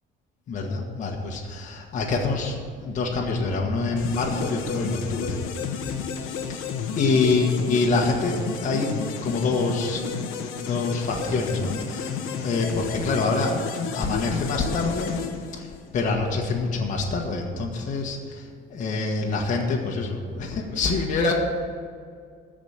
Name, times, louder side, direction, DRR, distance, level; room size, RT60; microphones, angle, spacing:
voice 1, 0.5-5.4 6.2-6.7 7.0-10.1 10.6-12.1 12.4-13.6 13.9-15.1 15.5-21.3, left 3 dB, 35° left, 0 dB, 1.5 m, -26 dB
sound 1, 4.0-16.0, left 6 dB, 80° left, 1.2 m, -32 dB
14.0 x 5.1 x 8.9 m, 2.1 s
cardioid pair, 170°, 21 cm